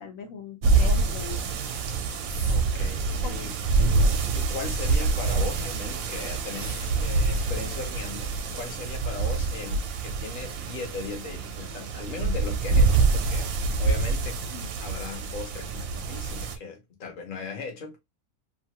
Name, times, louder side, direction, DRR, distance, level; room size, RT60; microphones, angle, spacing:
voice 1, 0.0-1.5 3.2-3.7 14.5-14.7, left 5 dB, 75° left, 1.1 m, -40 dB
sound 1, 0.6-16.6, right 4 dB, 80° right, 1.0 m, -26 dB
sound 2, 1.6-2.9 6.4-7.3, right 4 dB, 50° right, 0.6 m, -44 dB
voice 2, 2.5-3.5 4.3-13.5 13.8-14.4 14.8-18.0, left 5 dB, 45° left, 0.9 m, -38 dB
2.8 x 2.2 x 2.8 m
omnidirectional pair, 1.4 m